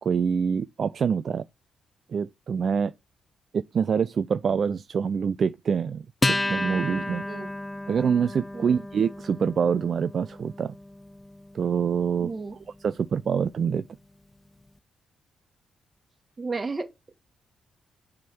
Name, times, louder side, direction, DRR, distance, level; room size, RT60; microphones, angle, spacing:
voice 1, 0.0-1.4 2.1-2.9 3.5-6.0 6.5-7.2 7.9-10.7 11.5-12.3 12.8-13.9, right 6 dB, 55° right, 0.4 m, -25 dB
Acoustic guitar, 6.2-13.1, left 2 dB, 20° left, 0.5 m, -32 dB
voice 2, 8.5-8.9 12.2-12.6 16.4-17.2, right 3 dB, 35° right, 1.8 m, -33 dB
7.4 x 3.7 x 6.1 m
hypercardioid pair, 45°, 0 cm